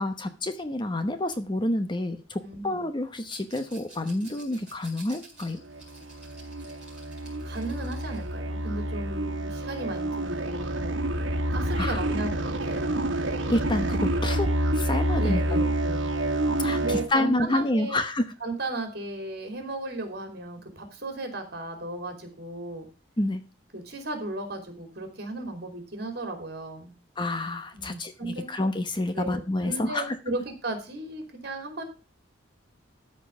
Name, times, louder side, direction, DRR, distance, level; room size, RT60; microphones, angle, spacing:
voice 1, 0.0-5.6 11.8-12.0 13.5-14.5 14.7-15.6 16.6-18.3 23.2-23.4 27.2-30.2, left 1 dB, 25° left, 10 dB, 0.9 m, -28 dB
voice 2, 2.4-2.9 7.4-11.1 11.5-12.9 15.2-16.1 16.7-18.0 18.4-22.9 23.7-26.9 27.7-28.5 29.1-31.8, right 2 dB, 55° right, 5 dB, 3.2 m, -35 dB
Rattle, 3.3-8.3, right 2 dB, 5° right, 4.6 m, -50 dB
sound 1, 5.7-17.1, right 1 dB, 75° right, 1.6 m, -28 dB
13.5 x 4.6 x 7.0 m, 0.32 s
head